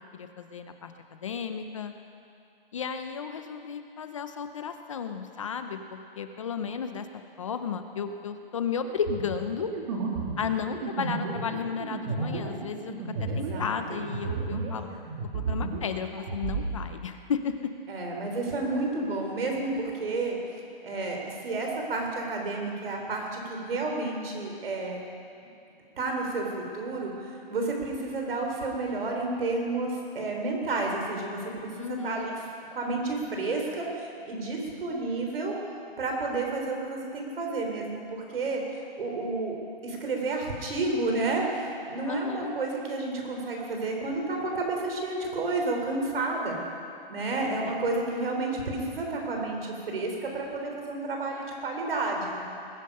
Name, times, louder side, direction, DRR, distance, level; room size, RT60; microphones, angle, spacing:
voice 1, 0.1-1.9 2.7-7.1 7.4-9.7 10.4-12.9 13.2-14.9 15.3-17.5 31.8-32.3 42.0-42.6 47.4-47.8, left 6 dB, 35° left, 8 dB, 0.6 m, -33 dB
sound 1, 9.0-14.8 15.1-16.7, right 4 dB, 40° right, 2.3 m, -32 dB
voice 2, 13.3-14.0 17.9-20.4 20.8-25.0 25.9-32.3 32.7-35.6 36.0-39.5 39.8-46.6 47.1-52.4, right 3 dB, 70° right, 1 dB, 4.0 m, -31 dB
20.5 x 10.0 x 5.5 m, 2.5 s
hypercardioid pair, 170°, 30 cm